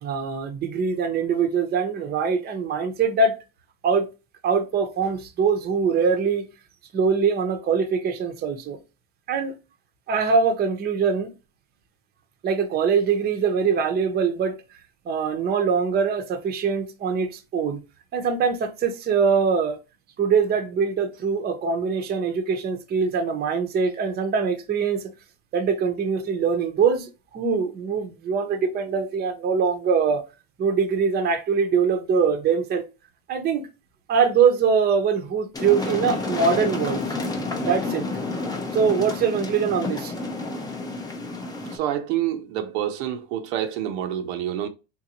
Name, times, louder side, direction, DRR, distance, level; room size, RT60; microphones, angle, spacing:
voice 1, 0.0-3.4 3.8-4.1 4.4-6.4 6.9-8.8 9.3-9.5 10.1-11.3 12.4-14.5 15.1-17.8 18.1-19.8 20.2-25.0 25.5-30.2 30.6-32.8 33.3-33.6 34.1-37.0 37.6-38.1 38.7-40.1, right 5 dB, 30° right, 0.7 m, -23 dB
sound 1, 35.5-41.8, left 3 dB, 10° left, 0.6 m, -30 dB
voice 2, 41.7-44.7, right 11 dB, 80° right, 0.7 m, -27 dB
3.8 x 2.6 x 2.9 m
supercardioid pair, 120°, 33 cm